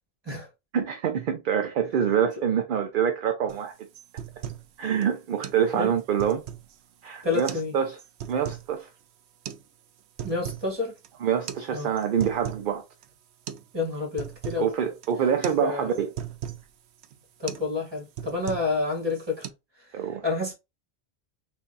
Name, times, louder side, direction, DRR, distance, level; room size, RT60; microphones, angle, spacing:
voice 1, 0.7-3.7 4.8-6.4 7.0-8.0 8.3-8.9 11.2-12.8 14.6-16.1 19.9-20.2, right 8 dB, 60° right, 0.7 m, -26 dB
sound 1, 3.5-3.6 3.9-4.7 5.0-5.1 5.4-5.6 6.0-6.8 7.3-7.7 8.0-8.7 9.4-9.6 10.0-10.7 11.0-11.1 11.5-11.6 12.0-12.7 13.0-13.1 13.5-13.7 13.9-14.7 15.0-15.2 15.4-15.6 15.9-16.6 17.0-17.2 17.5-17.7 18.0-18.8 19.1-19.5, right 9 dB, 90° right, 0.8 m, -37 dB
voice 2, 7.2-7.7 10.2-10.9 11.7-11.9 13.7-14.7 15.6-15.9 17.4-19.5 19.8-20.5, left 4 dB, 25° right, 1.8 m, -29 dB
3.4 x 2.6 x 3.9 m
omnidirectional pair, 1.1 m